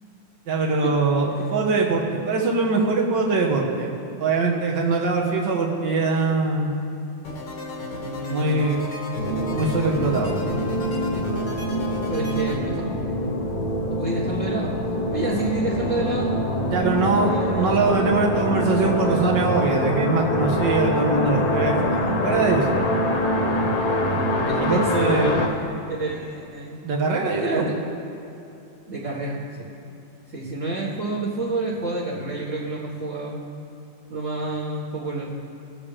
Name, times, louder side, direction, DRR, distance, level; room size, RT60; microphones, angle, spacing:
voice 1, 0.5-3.9 4.2-6.8 8.3-8.8 9.5-10.4 16.6-22.7 24.6-25.4 26.8-27.7, right 3 dB, 70° right, -1 dB, 1.9 m, -22 dB
sound 1, 7.2-12.6, left 2 dB, 70° left, 2.1 m, -35 dB
voice 2, 7.9-8.7 11.9-13.1 13.9-14.8 15.1-16.4 17.1-17.8 24.5-24.8 25.1-25.4 25.7-25.8 26.0-26.8 27.4-27.8 28.9-29.7 30.3-33.4 34.1-35.3, right 2 dB, 45° right, -5 dB, 1.9 m, -29 dB
sound 2, 9.1-25.5, left 1 dB, 55° left, 1.7 m, -24 dB
20.0 x 7.2 x 3.4 m, 2.8 s
omnidirectional pair, 2.0 m